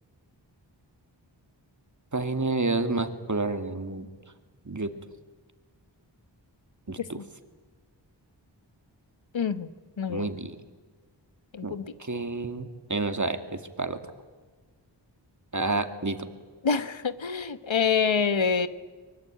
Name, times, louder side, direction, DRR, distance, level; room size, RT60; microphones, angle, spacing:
voice 1, 2.1-4.1 4.7-4.9 6.9-7.2 10.1-10.6 11.6-14.0 15.5-16.2, right 3 dB, 40° right, 8 dB, 2.3 m, -29 dB
voice 2, 9.3-9.7 10.0-10.3 11.5-11.8 16.6-18.7, left 6 dB, 90° left, 13 dB, 1.3 m, -26 dB
24.5 x 22.5 x 9.0 m, 1.4 s
wide cardioid pair, 50°, 45 cm